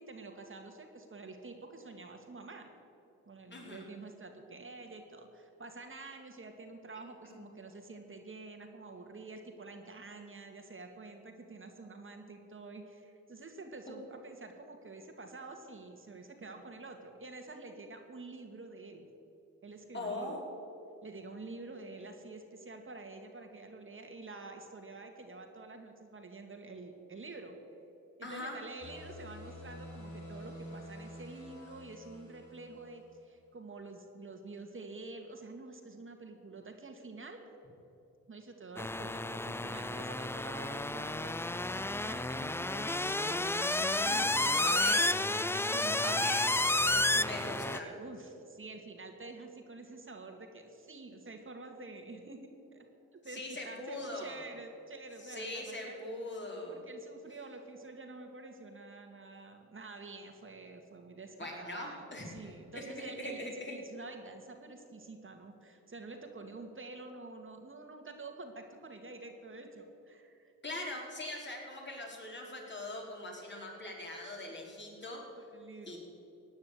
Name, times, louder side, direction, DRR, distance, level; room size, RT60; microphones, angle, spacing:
voice 1, 0.0-2.7 3.3-19.1 19.6-20.4 21.0-27.6 28.2-37.4 38.3-41.5 42.0-45.1 45.7-46.4 46.8-52.8 53.1-56.0 56.7-70.5 75.5-76.0, right 3 dB, 40° right, 4 dB, 2.0 m, -48 dB
voice 2, 3.5-3.9 7.3-7.4 13.9-14.0 19.9-20.4 28.2-28.5 44.6-45.0 46.0-46.5 47.2-47.9 53.2-54.4 55.2-56.8 61.4-63.7 70.6-75.2 75.9-76.0, left 1 dB, 35° left, -1 dB, 4.5 m, -41 dB
sound 1, 28.8-33.2, left 1 dB, 65° left, 3.6 m, -49 dB
sound 2, 38.8-47.8, left 2 dB, 10° left, 0.4 m, -31 dB
16.0 x 9.5 x 8.1 m, 2.8 s
cardioid pair, 70°, 33 cm